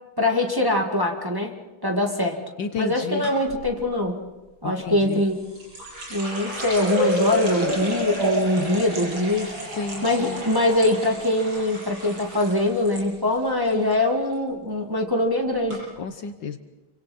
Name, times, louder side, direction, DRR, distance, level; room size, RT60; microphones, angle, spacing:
voice 1, 0.2-1.5 1.8-2.4 2.8-4.2 4.6-5.4 6.1-9.5 10.0-15.8, left 1 dB, 10° right, 1 dB, 2.0 m, -23 dB
voice 2, 2.6-3.3 4.6-5.2 9.8-10.4 16.0-16.6, left 5 dB, 65° left, 8 dB, 1.6 m, -31 dB
sound 1, 3.2-3.6 5.1-13.0 13.3-13.9 14.3-14.6 15.3-15.4 15.7-15.8, equal, 60° right, 8.2 m, -30 dB
28.5 x 25.5 x 4.4 m, 1.1 s
omnidirectional pair, 2.4 m